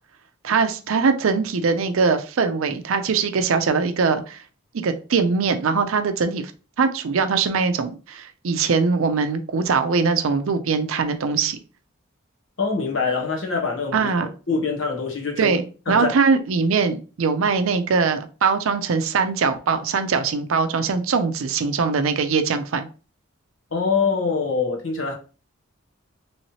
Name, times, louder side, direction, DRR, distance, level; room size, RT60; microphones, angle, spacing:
voice 1, 0.4-4.4 4.7-6.5 6.8-11.6 13.9-14.3 15.4-22.9, right 5 dB, 75° right, 0.5 m, -22 dB
voice 2, 12.6-15.6 15.9-16.1 23.7-25.1, left 4 dB, 70° left, 1.0 m, -24 dB
3.1 x 3.0 x 2.8 m
head